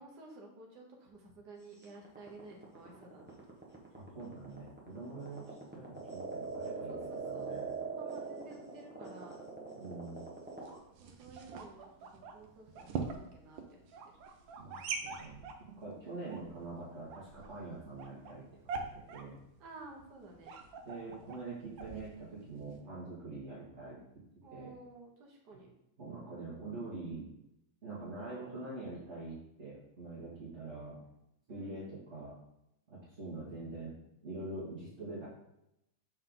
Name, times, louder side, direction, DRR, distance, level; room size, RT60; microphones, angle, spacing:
voice 1, 0.0-3.4 5.3-5.6 6.8-7.5 8.0-9.4 11.0-13.9 19.6-20.5 24.4-25.7 31.5-31.8, right 2 dB, 60° right, 0 dB, 1.7 m, -53 dB
sound 1, 1.8-10.8, right 4 dB, 10° right, 0.7 m, -42 dB
voice 2, 4.0-5.4 5.7-7.7 9.8-10.2 14.6-18.4 18.7-19.4 20.8-24.0 24.5-24.7 26.0-27.3 27.8-31.0 31.5-32.4 32.9-33.9 34.2-35.3, right 2 dB, 35° right, -10 dB, 2.1 m, -44 dB
sound 2, 10.4-22.8, right 5 dB, 75° right, 1.4 m, -45 dB
6.6 x 4.4 x 3.8 m, 0.83 s
omnidirectional pair, 2.2 m